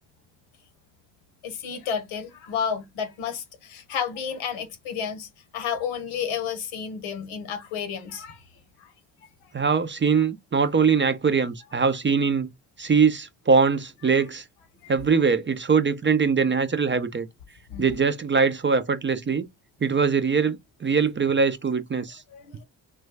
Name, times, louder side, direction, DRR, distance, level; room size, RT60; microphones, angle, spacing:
voice 1, 1.4-8.4 8.8-8.9 14.8-14.9 17.7-17.9 22.3-22.6, left 7 dB, 85° left, 0.9 m, -31 dB
voice 2, 9.5-12.5 12.8-14.4 14.9-17.3 17.8-19.5 19.8-22.2, right 5 dB, 25° right, 0.4 m, -22 dB
3.2 x 2.2 x 3.2 m
supercardioid pair, 45°, 48 cm